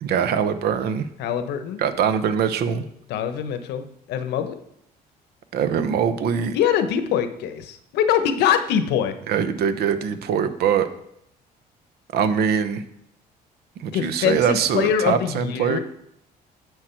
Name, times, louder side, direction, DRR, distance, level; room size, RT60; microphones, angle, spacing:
voice 1, 0.0-1.1 1.8-2.8 5.5-6.6 9.3-10.9 12.1-12.8 13.8-15.8, right 7 dB, 70° right, 11 dB, 0.9 m, -22 dB
voice 2, 1.2-1.8 3.1-4.6 6.5-9.2 13.9-15.8, left 9 dB, 80° left, 9 dB, 1.0 m, -23 dB
10.5 x 6.4 x 4.5 m, 0.74 s
cardioid pair, 110°, 17 cm